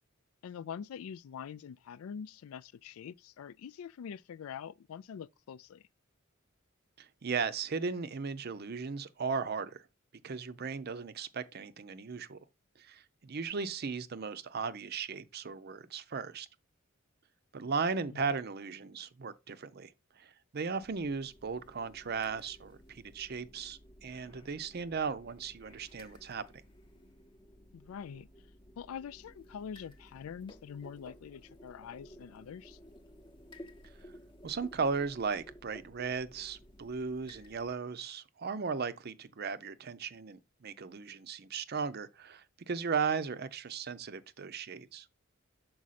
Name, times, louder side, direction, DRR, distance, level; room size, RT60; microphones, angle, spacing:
voice 1, 0.4-5.9 18.1-18.3 27.7-28.3 28.8-32.8, left 7 dB, 85° left, 0.3 m, -44 dB
voice 2, 7.0-9.8 10.2-12.4 12.8-16.5 17.5-19.9 20.2-26.4 34.4-45.1, right 5 dB, 50° right, 0.5 m, -36 dB
sound 1, 20.8-37.7, equal, 25° left, 0.8 m, -56 dB
6.2 x 4.6 x 4.1 m
head